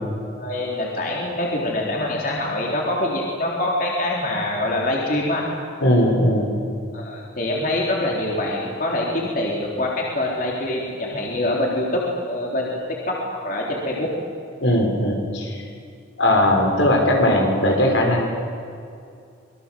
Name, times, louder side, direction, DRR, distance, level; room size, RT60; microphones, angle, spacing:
voice 1, 0.4-5.5 6.9-14.1, left 1 dB, 45° left, -3 dB, 3.8 m, -25 dB
voice 2, 5.8-6.6 14.6-15.6 16.2-18.3, left 1 dB, 75° left, 1 dB, 5.5 m, -19 dB
26.0 x 22.5 x 7.7 m, 2.4 s
head